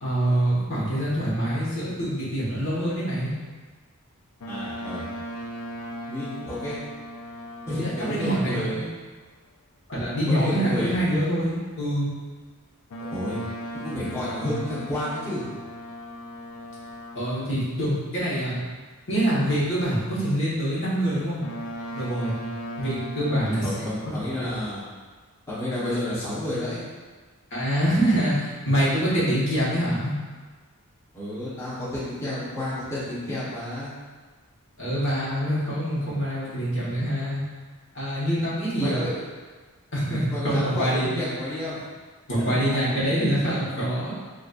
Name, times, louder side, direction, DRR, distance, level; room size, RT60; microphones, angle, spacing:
voice 1, 0.0-3.3 7.8-8.9 9.9-12.1 17.1-18.6 19.1-21.4 21.9-22.4 22.8-24.5 27.5-30.2 34.8-37.4 37.9-39.1 39.9-41.1 42.3-44.1, right 1 dB, 55° left, -9 dB, 1.4 m, -25 dB
Boat Water vehicle, 4.4-8.9 12.9-17.4 21.4-23.4, equal, 80° left, 0.5 m, -37 dB
voice 2, 4.5-5.1 6.1-6.8 7.7-8.9 10.3-11.0 13.1-13.4 13.7-15.5 23.6-24.8 25.5-26.8 31.1-33.9 38.8-39.2 40.3-41.8 42.3-42.9, left 1 dB, 15° left, -13 dB, 1.2 m, -30 dB
6.1 x 2.5 x 2.5 m, 1.4 s
head